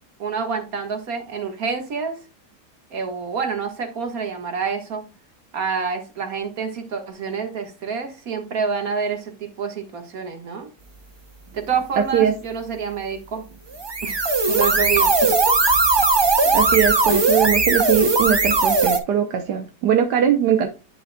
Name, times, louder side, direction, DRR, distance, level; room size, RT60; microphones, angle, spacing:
voice 1, 0.2-2.1 2.9-5.0 5.5-10.7 11.5-13.4 14.0-15.1, right 6 dB, 60° right, 2.0 m, -27 dB
sound 1, 13.7-19.0, right 3 dB, 35° right, 0.4 m, -18 dB
voice 2, 16.5-20.7, right 9 dB, 80° right, 1.4 m, -20 dB
10.0 x 5.4 x 2.2 m
omnidirectional pair, 1.8 m